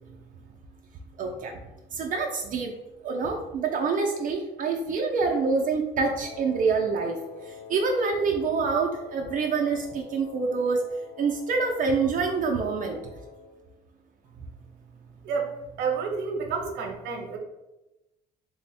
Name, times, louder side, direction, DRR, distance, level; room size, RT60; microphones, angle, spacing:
voice 1, 1.2-1.5 1.9-2.7 3.0-10.9 11.2-13.0, right 4 dB, 50° right, 1 dB, 0.5 m, -26 dB
Wind instrument woodwind instrument, 6.2-13.5, left 7 dB, 40° left, 0.9 m, -46 dB
voice 2, 15.2-17.4, right 5 dB, 90° right, 3 dB, 0.7 m, -30 dB
3.4 x 2.1 x 4.0 m, 0.99 s
cardioid pair, 110°, 17 cm